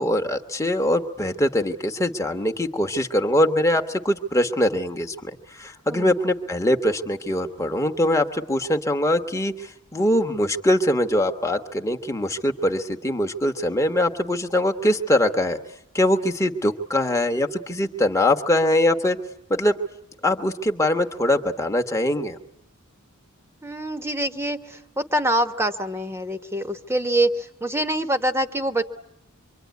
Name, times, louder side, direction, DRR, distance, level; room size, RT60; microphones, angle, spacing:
voice 1, 0.0-15.6 15.9-19.2 19.5-19.8 20.2-22.4, left 1 dB, 15° left, 4 dB, 1.2 m, -22 dB
voice 2, 23.6-28.8, right 1 dB, 10° right, 8 dB, 1.1 m, -25 dB
25.5 x 24.5 x 9.4 m, 0.80 s
head